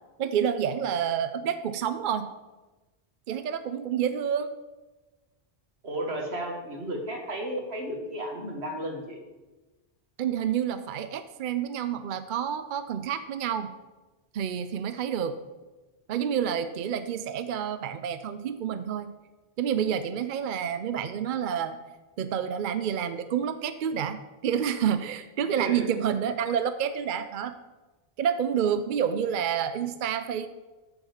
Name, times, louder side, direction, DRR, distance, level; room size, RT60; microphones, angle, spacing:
voice 1, 0.2-2.3 3.3-4.5 10.2-13.7 14.3-15.4 16.1-19.1 19.6-21.8 22.2-27.6 28.2-30.5, right 8 dB, 60° right, 11 dB, 0.6 m, -29 dB
voice 2, 5.8-9.2 25.6-25.9, right 1 dB, 75° right, 2 dB, 1.9 m, -33 dB
7.4 x 6.9 x 7.0 m, 1.2 s
omnidirectional pair, 1.1 m